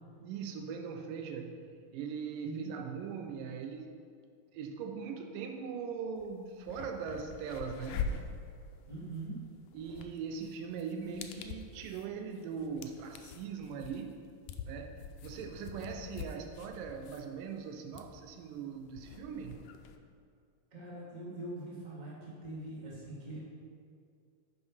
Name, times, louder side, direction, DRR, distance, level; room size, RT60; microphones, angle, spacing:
voice 1, 0.2-4.0 4.5-8.1 9.7-14.3 14.7-19.6, right 6 dB, 80° right, 5 dB, 2.2 m, -40 dB
voice 2, 2.4-2.8 8.9-9.4 20.7-23.4, right 2 dB, 20° right, -6 dB, 1.4 m, -43 dB
sound 1, 6.2-6.3 6.6-20.0, left 5 dB, 80° left, 2.1 m, -44 dB
9.4 x 6.0 x 5.4 m, 2.3 s
omnidirectional pair, 4.0 m